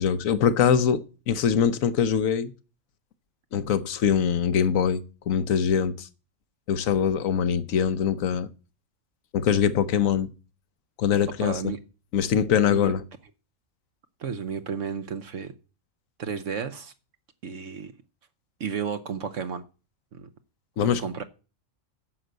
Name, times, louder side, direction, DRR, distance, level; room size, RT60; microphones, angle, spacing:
voice 1, 0.0-2.5 3.5-6.1 6.7-8.5 9.3-10.3 11.0-11.6 12.1-13.0 20.8-21.0, left 8 dB, 85° left, 1.3 m, -23 dB
voice 2, 11.4-11.8 12.7-12.9 14.2-15.5 16.2-16.9 17.4-17.9 18.6-19.6 20.1-20.3 20.8-21.2, right 6 dB, 70° right, 1.2 m, -32 dB
10.0 x 6.5 x 8.0 m
omnidirectional pair, 1.4 m